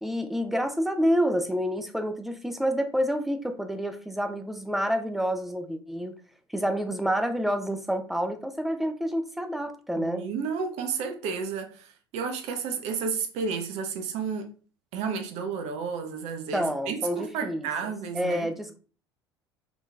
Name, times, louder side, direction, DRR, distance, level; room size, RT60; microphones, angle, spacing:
voice 1, 0.0-6.1 6.5-10.3 16.5-17.6 18.1-18.8, equal, ahead, 0.6 m, -28 dB
voice 2, 10.0-14.5 14.9-18.5, right 5 dB, 55° right, 0.9 m, -32 dB
5.3 x 3.1 x 2.4 m
figure-of-eight pair, 65°, 13 cm